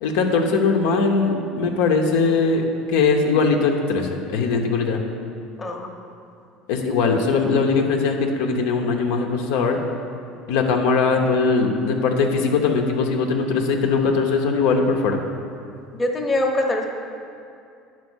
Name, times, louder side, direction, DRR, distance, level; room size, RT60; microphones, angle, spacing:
voice 1, 0.0-2.6 2.9-5.0 6.7-9.8 10.5-15.2, left 4 dB, 85° left, 2 dB, 0.9 m, -20 dB
voice 2, 5.6-5.9 16.0-16.8, left 1 dB, 15° left, 1 dB, 0.9 m, -23 dB
9.7 x 4.5 x 6.2 m, 2.5 s
cardioid pair, 130°, 0 cm